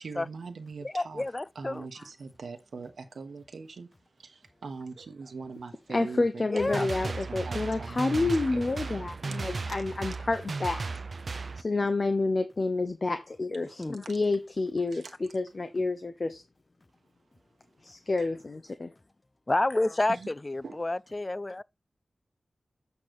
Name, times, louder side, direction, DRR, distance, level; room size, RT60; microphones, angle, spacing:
voice 1, 0.0-1.2 1.5-3.9 4.2-9.1 14.0-14.2 14.9-15.1 17.6-17.7 18.2-18.3 20.1-20.3 20.6-20.8, right 4 dB, 85° right, 1.2 m, -42 dB
voice 2, 0.9-1.8 6.5-6.9 13.8-14.0 19.5-21.6, left 2 dB, 30° left, 0.3 m, -29 dB
voice 3, 5.9-10.8 11.6-16.4 17.8-18.9, left 3 dB, 45° left, 0.9 m, -29 dB
sound 1, 6.6-11.6, right 4 dB, 60° right, 0.4 m, -35 dB
8.3 x 3.2 x 6.4 m
wide cardioid pair, 70°, 0 cm